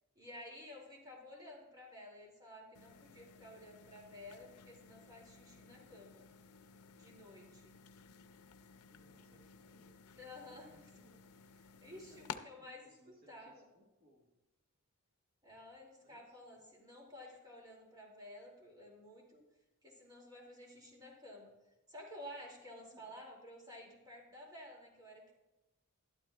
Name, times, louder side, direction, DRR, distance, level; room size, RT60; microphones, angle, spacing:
voice 1, 0.2-6.3 6.9-7.7 10.2-10.8 11.8-12.8 13.3-13.6 15.4-19.4 19.8-21.5 21.9-25.3, left 1 dB, 20° right, -1 dB, 2.6 m, -53 dB
sound 1, 2.8-12.4, left 6 dB, 80° left, 0.6 m, -54 dB
voice 2, 8.9-11.2 11.8-14.4 16.0-16.6 22.8-23.1, equal, 50° right, -2 dB, 1.7 m, -67 dB
12.0 x 12.0 x 2.4 m, 1.0 s
head